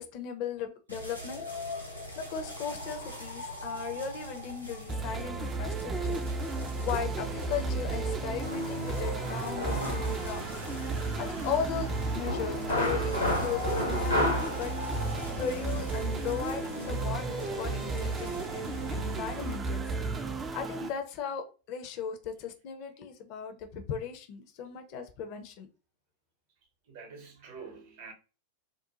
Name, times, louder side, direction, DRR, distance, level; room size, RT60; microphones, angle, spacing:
voice 1, 0.0-1.4 2.2-6.2 6.8-10.5 11.2-15.0 15.4-19.8 20.5-25.7, left 7 dB, 45° left, 0.5 m, -37 dB
sound 1, 0.9-19.4, equal, 90° right, 0.6 m, -43 dB
sound 2, 4.9-20.9, right 3 dB, 20° right, 0.4 m, -33 dB
sound 3, 7.2-19.6, left 1 dB, 85° left, 0.9 m, -36 dB
voice 2, 26.9-28.1, right 5 dB, 50° right, 0.8 m, -46 dB
2.5 x 2.1 x 2.8 m
figure-of-eight pair, 90°, 0 cm